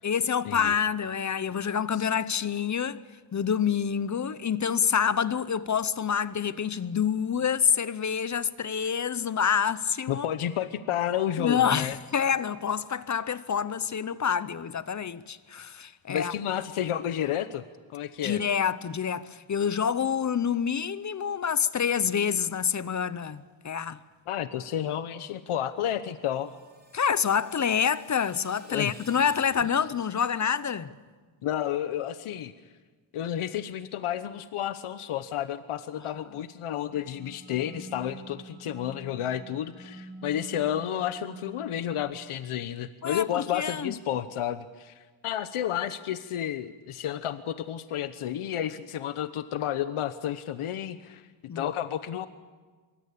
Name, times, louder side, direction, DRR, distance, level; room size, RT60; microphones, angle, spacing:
voice 1, 0.0-3.0 3.3-10.3 11.4-16.3 18.2-24.0 26.9-30.9 43.0-43.9 51.5-51.7, left 7 dB, 35° left, 0.8 m, -27 dB
voice 2, 10.1-12.0 16.1-17.6 17.9-18.4 24.3-26.5 28.7-28.9 29.6-29.7 31.4-32.5 33.1-51.3 51.5-52.3, left 10 dB, 85° left, 1.1 m, -31 dB
Screech, 26.0-30.2, right 2 dB, 20° right, 4.6 m, -54 dB
sound 1, 36.9-41.9, right 1 dB, 70° right, 7.3 m, -46 dB
24.5 x 23.5 x 8.4 m
wide cardioid pair, 160°, 49 cm